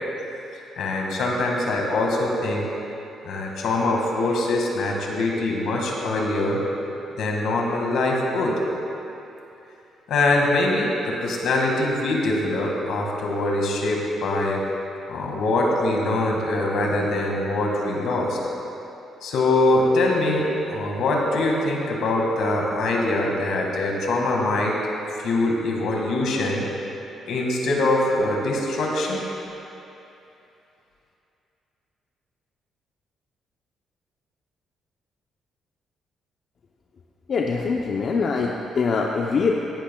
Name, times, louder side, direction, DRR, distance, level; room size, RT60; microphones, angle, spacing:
voice 1, 0.8-2.7 3.2-6.6 7.2-8.6 10.1-14.6 15.1-18.4 19.2-24.8 25.2-26.7 27.3-29.2, left 2 dB, 75° left, -1 dB, 1.9 m, -23 dB
voice 2, 37.3-39.5, left 4 dB, 55° left, 0 dB, 0.7 m, -23 dB
17.0 x 11.5 x 2.3 m, 2.8 s
cardioid pair, 90°, 0 cm